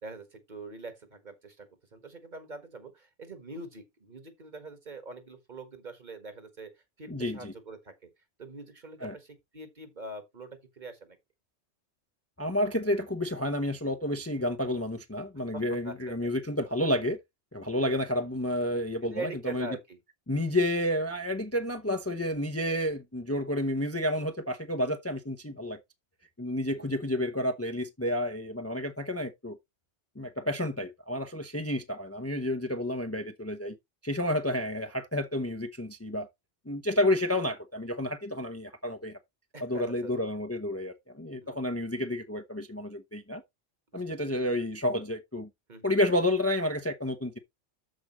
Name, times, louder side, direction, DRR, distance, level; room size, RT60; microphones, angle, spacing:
voice 1, 0.0-8.1 8.4-11.2 15.5-16.0 19.0-20.0 26.7-27.0 39.5-40.1 41.4-41.6 43.9-44.3 45.7-45.9, right 2 dB, 40° right, 1.7 m, -43 dB
voice 2, 7.1-7.5 9.0-9.1 12.4-17.2 17.5-19.7 20.3-25.8 26.4-29.6 30.2-33.8 34.0-36.3 36.7-39.2 39.6-43.4 43.9-45.5 45.8-47.4, left 1 dB, 15° left, 0.8 m, -30 dB
13.0 x 5.1 x 3.1 m
omnidirectional pair, 1.2 m